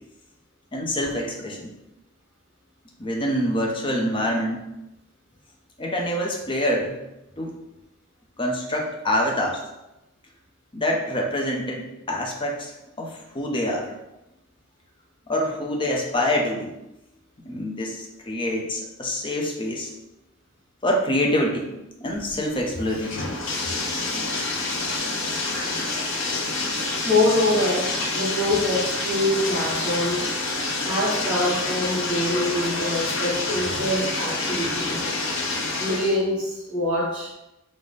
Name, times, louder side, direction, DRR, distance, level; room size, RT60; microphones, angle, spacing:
voice 1, 0.7-1.7 3.0-4.7 5.8-7.0 7.4-7.6 8.4-9.6 10.7-13.9 15.3-16.7 17.4-19.9 20.8-21.7 22.0-23.3, left 1 dB, 25° left, 0 dB, 0.6 m, -26 dB
Bathtub (filling or washing), 22.1-36.2, left 2 dB, 65° left, 0.7 m, -27 dB
voice 2, 27.0-30.3 30.8-35.1 35.8-37.3, left 1 dB, 5° right, -11 dB, 1.3 m, -24 dB
4.7 x 2.1 x 4.0 m, 0.94 s
head